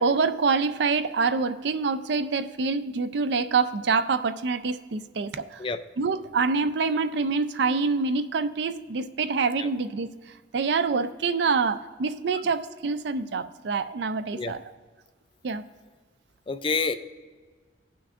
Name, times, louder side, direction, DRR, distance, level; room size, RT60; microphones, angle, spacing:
voice 1, 0.0-5.6 6.0-10.1 10.5-14.6 15.4-15.6, right 4 dB, 65° right, 12 dB, 0.4 m, -26 dB
voice 2, 16.5-16.9, left 4 dB, 30° left, 9 dB, 0.4 m, -28 dB
17.5 x 5.8 x 2.5 m, 1.5 s
head